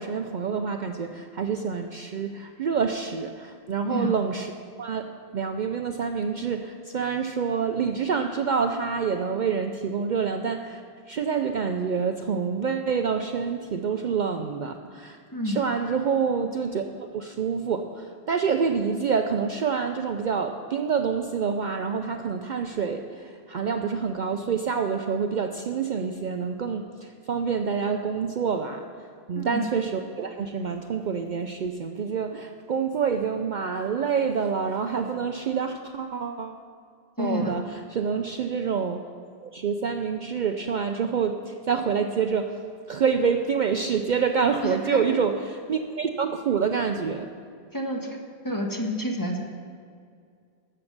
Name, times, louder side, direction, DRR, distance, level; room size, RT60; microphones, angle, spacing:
voice 1, 0.0-4.5 4.8-5.1 5.3-10.8 11.1-15.2 15.4-28.9 29.3-36.6 37.2-39.0 39.4-42.5 42.9-47.3, right 6 dB, 55° right, 5 dB, 0.6 m, -27 dB
voice 2, 37.2-37.6 44.6-45.0 47.7-48.2 48.4-49.4, equal, 20° left, 0 dB, 1.2 m, -29 dB
13.0 x 7.7 x 6.5 m, 2.3 s
omnidirectional pair, 1.1 m